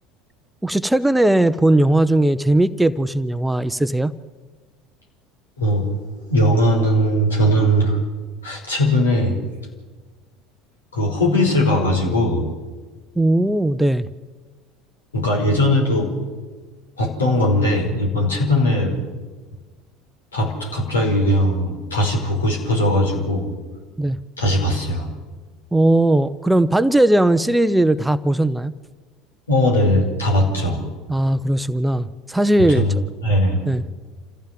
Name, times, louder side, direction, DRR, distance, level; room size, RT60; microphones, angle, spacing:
voice 1, 0.6-4.1 13.2-14.1 24.0-24.2 25.7-28.7 31.1-32.9 33.7-33.8, right 1 dB, 5° right, 13 dB, 0.8 m, -18 dB
voice 2, 5.6-5.9 6.3-8.0 8.4-9.4 10.9-12.5 15.1-16.1 17.0-19.0 20.3-23.5 24.4-25.1 29.5-30.8 32.5-33.0 33.2-33.6, equal, 80° left, 0 dB, 5.0 m, -19 dB
27.5 x 15.0 x 7.5 m, 1.4 s
figure-of-eight pair, 70°, 0 cm